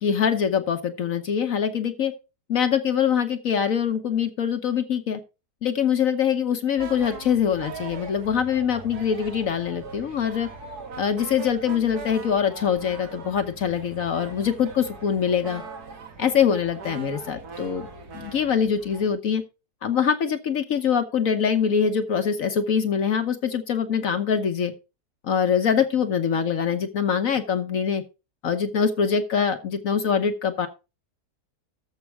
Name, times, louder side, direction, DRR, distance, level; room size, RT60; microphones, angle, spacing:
voice 1, 0.0-2.1 2.5-5.2 5.6-10.5 11.0-15.6 16.2-17.9 18.1-19.4 19.8-24.7 25.2-28.0 28.4-30.7, left 7 dB, 60° left, 7 dB, 1.3 m, -24 dB
sound 1, 6.8-19.1, right 4 dB, 75° right, 2.3 m, -41 dB
13.5 x 5.8 x 4.6 m, 0.30 s
omnidirectional pair, 1.7 m